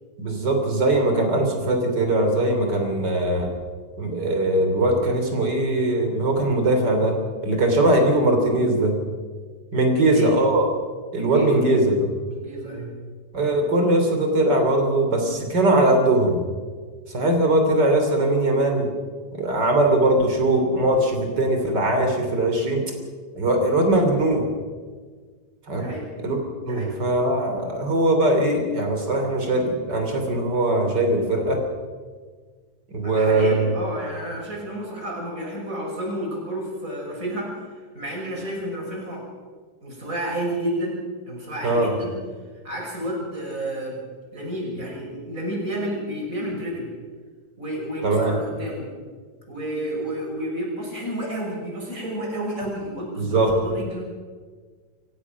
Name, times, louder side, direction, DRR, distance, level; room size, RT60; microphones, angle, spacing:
voice 1, 0.2-3.5 4.0-7.2 7.4-9.0 9.7-10.6 11.1-12.1 13.3-16.4 17.1-18.9 19.3-22.8 23.3-24.5 25.7-25.9 26.2-26.4 26.6-31.6 32.9-33.7 41.6-41.9 48.0-48.3 53.2-53.5, right 1 dB, 85° right, 4 dB, 3.9 m, -20 dB
voice 2, 9.9-10.4 11.1-11.8 12.2-12.9 25.7-26.1 26.6-26.9 33.0-39.3 39.8-41.0 41.3-42.2 42.6-44.0 44.3-46.9 47.6-48.9 49.5-54.0, right 1 dB, 50° right, -2 dB, 6.6 m, -31 dB
28.0 x 15.5 x 6.1 m, 1.5 s
omnidirectional pair, 1.8 m